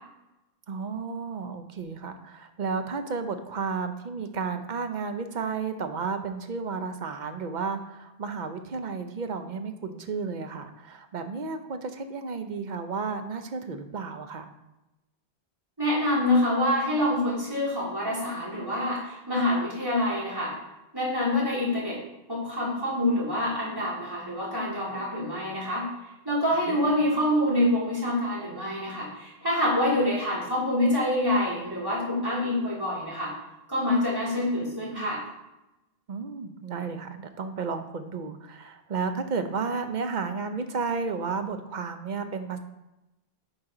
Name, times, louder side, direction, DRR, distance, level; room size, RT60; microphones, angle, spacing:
voice 1, 0.7-14.5 26.6-27.0 36.1-42.6, right 5 dB, 50° right, 8 dB, 0.8 m, -32 dB
voice 2, 15.8-20.5 20.9-22.0 22.3-25.9 26.2-33.3 33.7-35.2, left 1 dB, 20° right, -7 dB, 3.1 m, -26 dB
10.5 x 4.5 x 3.8 m, 0.96 s
omnidirectional pair, 1.0 m